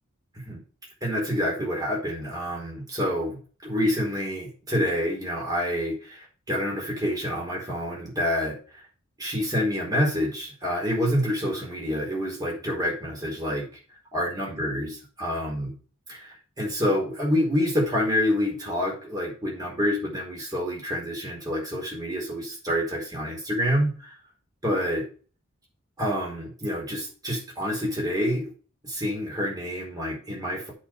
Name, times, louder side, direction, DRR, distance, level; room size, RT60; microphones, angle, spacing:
voice 1, 1.0-8.8 9.2-13.7 14.1-15.7 16.1-24.1 24.6-25.0 26.0-28.5 28.8-30.7, equal, 20° right, -2 dB, 4.4 m, -27 dB
8.2 x 5.6 x 6.4 m, 0.39 s
head